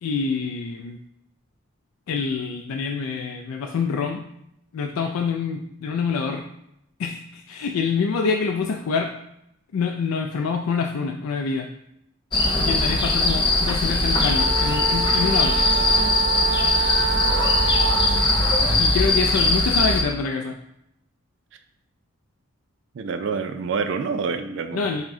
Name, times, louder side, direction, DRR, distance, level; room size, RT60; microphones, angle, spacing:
voice 1, 0.0-1.0 2.1-4.3 4.7-6.4 7.0-9.1 9.7-11.7 12.6-15.6 18.7-20.6 24.7-25.0, left 5 dB, 90° left, 3 dB, 0.3 m, -26 dB
sound 1, 12.3-20.0, left 2 dB, 25° left, 0.5 m, -20 dB
Wind instrument woodwind instrument, 14.2-18.4, right 5 dB, 45° right, 1.3 m, -27 dB
voice 2, 22.9-24.8, right 5 dB, 60° right, 8 dB, 0.3 m, -27 dB
6.0 x 2.1 x 3.6 m, 0.79 s
head